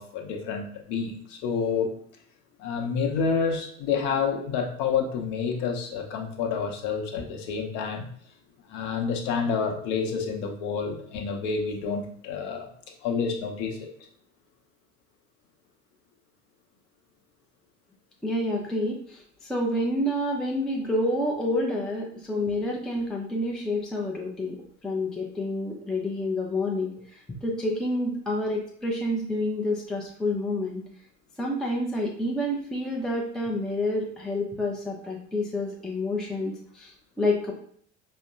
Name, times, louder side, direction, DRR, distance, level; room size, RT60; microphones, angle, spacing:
voice 1, 0.0-1.9 2.6-8.1 8.7-12.7 13.0-13.9, left 5 dB, 50° left, 3 dB, 0.8 m, -28 dB
voice 2, 18.2-24.6 24.8-30.8 31.4-37.5, left 1 dB, ahead, 0 dB, 0.4 m, -28 dB
5.0 x 2.1 x 2.5 m, 0.63 s
figure-of-eight pair, 70°, 37 cm